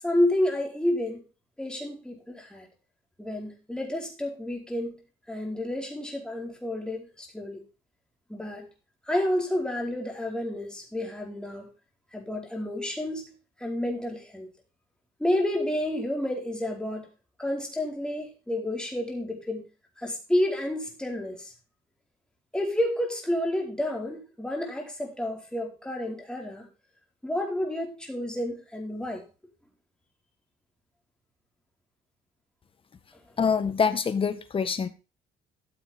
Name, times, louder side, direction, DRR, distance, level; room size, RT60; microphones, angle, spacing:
voice 1, 0.0-1.2 1.6-2.7 3.2-5.0 5.3-7.6 8.3-8.7 9.1-11.7 12.1-13.3 13.6-14.5 15.2-17.1 17.4-19.7 20.0-21.5 22.5-26.7 27.2-29.2, left 1 dB, 5° left, 4.5 m, -30 dB
voice 2, 33.4-34.9, left 6 dB, 30° left, 1.6 m, -25 dB
14.0 x 7.8 x 3.5 m
cardioid pair, 110°, 17 cm